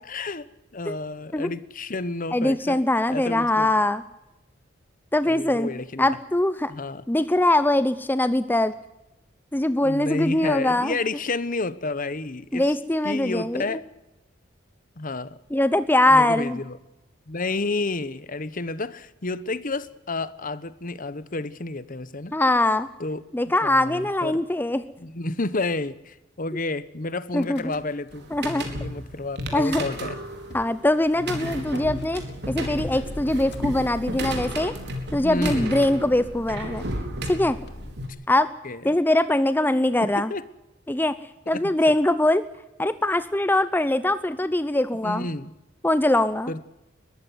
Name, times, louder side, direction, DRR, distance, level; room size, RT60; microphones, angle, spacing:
voice 1, 0.1-2.8 3.1-3.7 5.2-6.1 6.7-7.0 9.8-12.7 13.0-13.8 15.0-15.4 16.1-16.8 17.3-22.3 23.0-23.2 23.6-24.4 25.0-28.3 28.7-30.2 35.1-35.7 38.6-38.8 40.0-40.4 41.5-41.9 45.0-45.5 46.5-46.6, left 2 dB, 45° left, 16 dB, 1.1 m, -30 dB
voice 2, 2.3-4.0 5.1-5.7 6.0-6.7 7.1-8.7 9.5-11.0 12.5-13.8 15.5-16.6 22.3-22.9 23.3-24.8 27.3-27.8 28.3-28.7 29.5-29.8 30.5-34.7 35.1-36.8 37.3-37.6 38.3-38.5 38.8-40.3 40.9-41.1 41.5-42.4 42.8-45.3 45.8-46.5, left 1 dB, 10° left, 13 dB, 0.7 m, -22 dB
Car / Engine starting / Idling, 27.3-28.1 28.4-29.2 29.8-29.9 30.1-30.2 30.5-30.8 31.7-37.9, left 1 dB, 60° left, 2.5 m, -42 dB
sound 1, 28.1-38.1, right 1 dB, 60° right, 4.6 m, -33 dB
22.0 x 14.5 x 9.5 m, 0.95 s
head